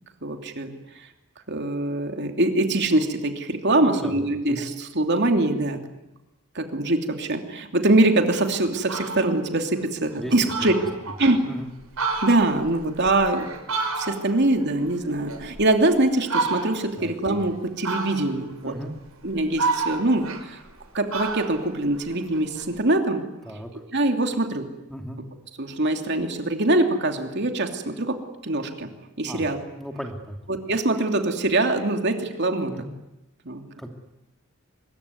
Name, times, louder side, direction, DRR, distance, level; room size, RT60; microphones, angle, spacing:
voice 1, 0.2-1.1 1.5-5.8 6.5-10.7 11.2-11.4 12.2-13.5 14.0-18.7 19.2-20.6 20.9-23.2 23.9-24.7 25.6-28.9 29.2-29.6 30.5-32.7 33.4-33.6, right 2 dB, 55° right, 4 dB, 2.9 m, -23 dB
voice 2, 3.8-4.1 4.5-4.7 10.2-10.3 11.4-11.7 17.0-17.2 18.6-18.9 23.5-23.7 24.9-25.2 29.3-29.4 29.8-30.4 32.7-32.9 33.8-33.9, equal, ahead, 3 dB, 2.7 m, -36 dB
Fowl, 8.2-8.4 8.7-9.3 9.8-9.9 10.2-10.3 10.5-11.4 11.8-14.4 14.8-15.8 16.3-16.9 17.8-18.5 19.1-20.8 21.1-22.7, right 4 dB, 85° right, 6.0 m, -30 dB
25.0 x 22.5 x 9.7 m, 0.95 s
head